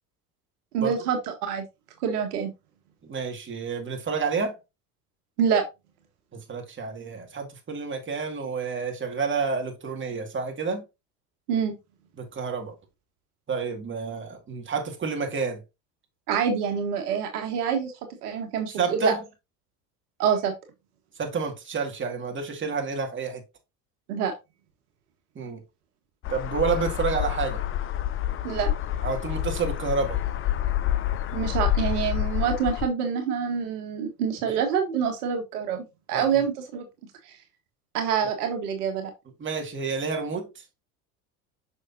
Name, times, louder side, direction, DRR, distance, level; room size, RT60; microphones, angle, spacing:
voice 1, 0.7-1.7 2.0-2.5 5.4-5.6 11.5-11.8 16.3-17.9 18.2-19.1 20.2-20.5 24.1-24.3 28.4-28.7 31.3-36.8 37.9-39.1, right 7 dB, 75° right, 1.5 m, -26 dB
voice 2, 3.0-4.6 6.3-10.8 12.2-12.7 13.5-15.6 18.8-19.2 21.2-23.4 25.4-25.6 26.3-27.6 29.0-30.2 36.1-36.4 39.4-40.6, right 4 dB, 25° right, 2.2 m, -29 dB
sound 1, 26.2-32.9, left 12 dB, 30° left, 0.6 m, -28 dB
6.3 x 5.8 x 2.7 m
hypercardioid pair, 90°, 46 cm